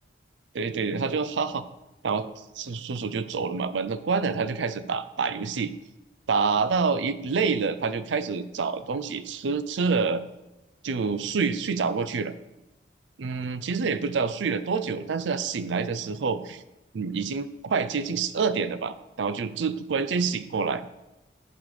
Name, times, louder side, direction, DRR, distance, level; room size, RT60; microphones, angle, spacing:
voice 1, 0.5-1.6 2.0-2.3 2.6-5.7 6.3-10.2 10.8-12.3 13.2-16.6 16.9-20.8, right 5 dB, 80° right, 13 dB, 0.5 m, -27 dB
10.5 x 6.8 x 3.2 m, 0.99 s
head